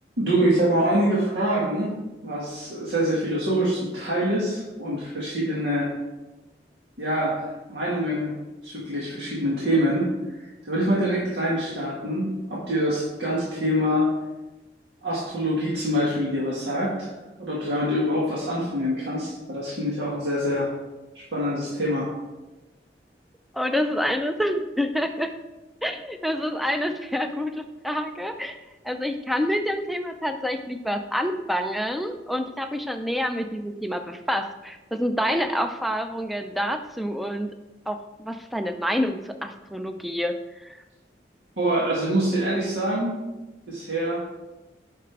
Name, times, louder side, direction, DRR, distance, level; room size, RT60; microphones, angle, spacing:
voice 1, 0.2-2.0 2.2-5.9 7.0-8.4 8.6-14.1 15.0-17.1 17.4-20.7 21.3-22.1 41.6-43.2 43.7-44.2, equal, 80° right, -6 dB, 1.9 m, -25 dB
voice 2, 23.5-25.3 25.8-37.5 37.9-40.8, equal, ahead, 6 dB, 0.4 m, -27 dB
8.3 x 5.9 x 4.7 m, 1.1 s
head